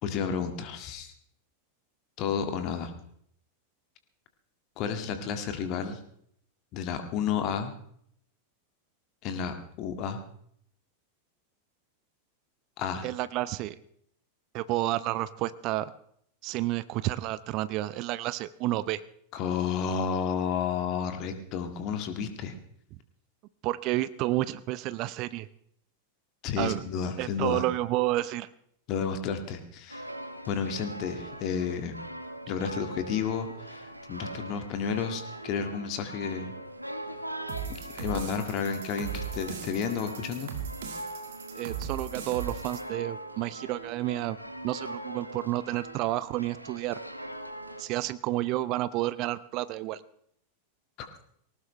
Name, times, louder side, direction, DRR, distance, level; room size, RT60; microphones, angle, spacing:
voice 1, 0.0-1.1 2.2-2.9 4.8-6.0 6.7-7.7 9.2-10.2 12.8-13.1 19.3-22.5 26.4-27.6 28.9-30.1 30.5-32.0 32.5-36.5 37.7-40.5 51.0-51.1, left 7 dB, 40° left, 7 dB, 1.9 m, -31 dB
voice 2, 13.0-13.7 14.5-15.9 16.4-19.0 23.6-25.5 26.6-26.8 27.2-28.5 41.6-44.4 44.6-47.0 47.8-50.0, right 16 dB, 40° right, 17 dB, 0.6 m, -30 dB
sound 1, 29.9-47.8, right 1 dB, 90° right, 1.0 m, -41 dB
sound 2, 37.5-42.8, right 8 dB, 55° right, 2.1 m, -38 dB
19.5 x 18.5 x 3.3 m, 0.67 s
figure-of-eight pair, 90°, 0 cm